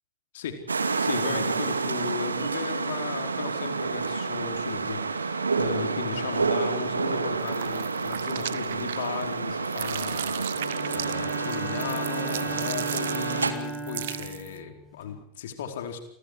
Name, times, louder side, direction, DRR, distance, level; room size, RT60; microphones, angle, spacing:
sound 1, 0.7-13.5, right 4 dB, 75° right, 2.4 m, -29 dB
voice 1, 1.0-16.0, left 7 dB, 60° left, 6 dB, 4.7 m, -36 dB
sound 2, 7.4-9.3 9.6-14.6, right 12 dB, 60° right, 1.0 m, -37 dB
Bowed string instrument, 10.5-15.2, right 3 dB, 10° left, 5.0 m, -37 dB
29.5 x 25.0 x 5.0 m, 0.68 s
figure-of-eight pair, 90°, 0 cm